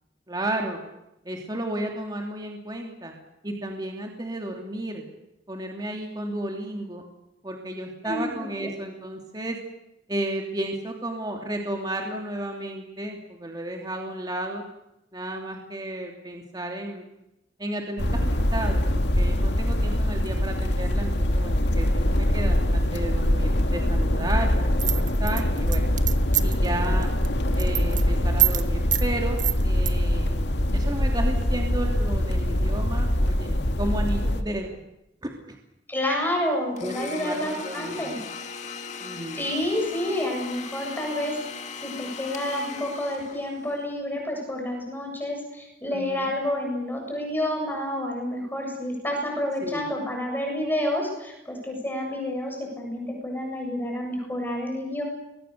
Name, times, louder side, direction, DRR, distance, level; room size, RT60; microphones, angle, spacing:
voice 1, 0.3-0.8 1.2-3.1 3.4-5.1 5.5-7.1 7.4-9.6 10.1-14.6 15.1-17.0 17.6-25.9 26.4-27.1 27.5-30.5 30.7-34.8 35.2-35.5 36.8-38.3 39.0-39.4 45.9-46.3 49.6-49.9, right 1 dB, 25° right, 1 dB, 3.0 m, -33 dB
voice 2, 8.0-8.7 35.9-38.2 39.3-41.3 41.8-55.0, left 1 dB, 10° left, 1 dB, 7.7 m, -29 dB
sound 1, 18.0-34.4, left 1 dB, 70° left, 2.1 m, -23 dB
sound 2, 24.8-26.7 27.0-27.3 27.5-28.0 28.4-28.6 28.9-29.1 29.4-29.9, right 14 dB, 45° right, 1.5 m, -24 dB
Domestic sounds home sounds, 36.8-43.8, left 5 dB, 40° left, 2.3 m, -39 dB
29.5 x 23.0 x 6.8 m, 0.88 s
head